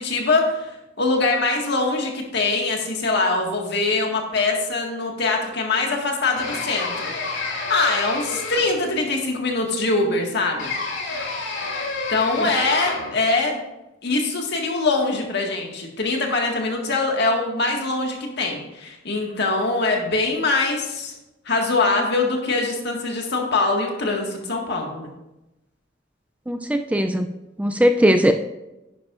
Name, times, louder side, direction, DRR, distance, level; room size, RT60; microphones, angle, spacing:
voice 1, 0.0-7.1 7.7-10.7 12.1-13.6 14.0-21.1 21.5-25.1, left 3 dB, 60° left, 1 dB, 1.8 m, -23 dB
sound 1, 6.4-8.9 10.6-13.2, left 3 dB, 90° left, 2.8 m, -29 dB
voice 2, 26.5-27.3 27.6-28.3, equal, 5° right, 7 dB, 0.3 m, -19 dB
10.0 x 10.0 x 2.5 m, 0.97 s
head